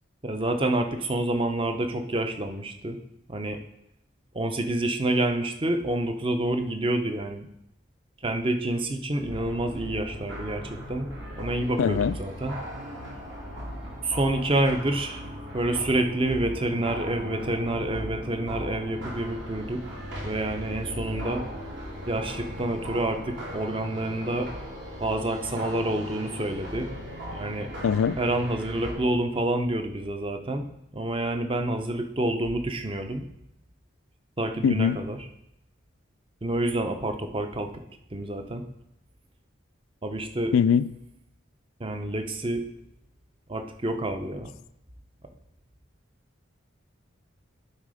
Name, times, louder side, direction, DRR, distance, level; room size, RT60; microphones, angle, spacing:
voice 1, 0.2-3.0 3.3-3.6 4.3-7.5 8.2-12.5 14.0-21.4 22.1-24.5 25.0-26.9 27.3-27.7 28.2-30.6 30.9-33.2 34.4-35.2 36.4-37.7 38.1-38.6 40.0-40.5 41.8-42.7 43.5-44.5, right 1 dB, 25° right, 6 dB, 0.6 m, -28 dB
sound 1, 9.3-28.9, equal, 65° right, 2.8 m, -38 dB
voice 2, 11.8-12.2 27.8-28.2 34.6-35.0 40.5-40.9, left 7 dB, 90° left, 17 dB, 0.3 m, -22 dB
11.5 x 4.1 x 4.9 m, 0.80 s
head